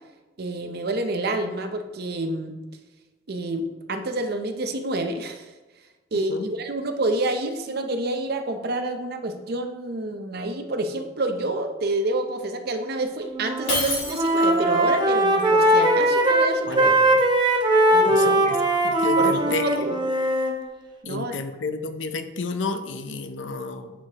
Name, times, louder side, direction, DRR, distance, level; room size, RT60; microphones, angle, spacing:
voice 1, 0.4-2.6 3.3-5.5 6.1-17.0 17.9-18.3 19.2-20.0 21.0-21.3, right 2 dB, 55° right, 7 dB, 0.6 m, -28 dB
Wind instrument woodwind instrument, 13.3-13.7 14.0-20.5, right 1 dB, 25° right, 0.8 m, -20 dB
Shatter, 13.7-14.7, left 2 dB, 35° left, 2.4 m, -28 dB
voice 2, 16.7-17.1 18.1-18.6 18.8-19.7 21.1-23.9, left 3 dB, 75° left, 8 dB, 0.6 m, -31 dB
11.0 x 4.8 x 2.9 m, 1.2 s
head